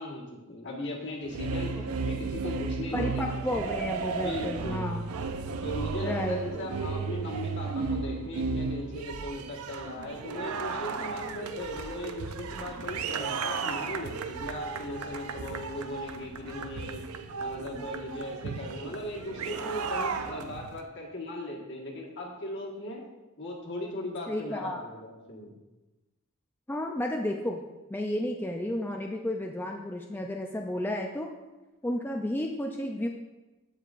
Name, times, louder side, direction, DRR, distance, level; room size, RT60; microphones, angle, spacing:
voice 1, 0.0-1.7 2.1-3.3 4.2-4.9 5.6-17.0 17.4-23.0 23.4-25.6, left 1 dB, 55° left, -2 dB, 1.5 m, -38 dB
sound 1, 1.2-20.8, right 5 dB, 85° right, 0.5 m, -34 dB
voice 2, 2.9-5.1 6.0-6.5 24.3-24.8 26.7-27.6 27.9-31.3 31.8-33.1, left 1 dB, 10° left, 1 dB, 0.4 m, -32 dB
14.5 x 4.9 x 2.5 m, 1.1 s
head